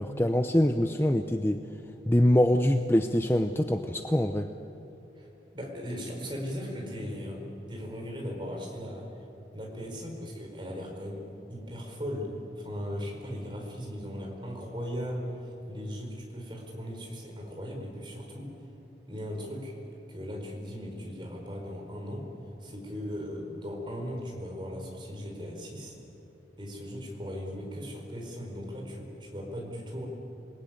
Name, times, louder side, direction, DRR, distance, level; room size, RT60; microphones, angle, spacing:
voice 1, 0.0-1.6 2.1-4.5, left 1 dB, 15° left, 7 dB, 0.6 m, -24 dB
voice 2, 5.5-9.3 9.5-11.2 11.5-18.6 19.1-19.7 20.1-22.3 22.6-26.0 26.6-30.1, equal, 25° right, 0 dB, 4.8 m, -38 dB
27.5 x 21.0 x 9.4 m, 3.0 s
head